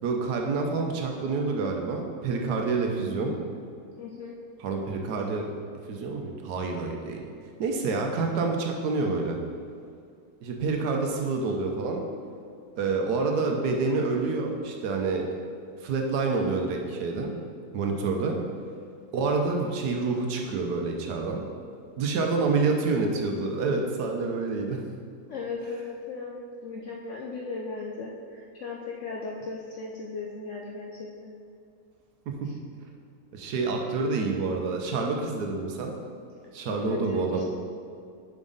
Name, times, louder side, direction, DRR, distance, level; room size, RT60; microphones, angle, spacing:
voice 1, 0.0-3.3 4.6-5.5 5.9-7.2 7.6-9.4 10.4-12.1 12.8-15.3 15.8-17.3 17.7-18.4 19.1-21.4 22.0-24.8 33.3-35.9 36.5-37.4, right 4 dB, 70° right, 2 dB, 1.3 m, -27 dB
voice 2, 4.0-4.4 25.3-31.4 36.6-37.4, left 4 dB, 65° left, -2 dB, 0.7 m, -37 dB
7.3 x 5.1 x 3.9 m, 2.3 s
omnidirectional pair, 1.8 m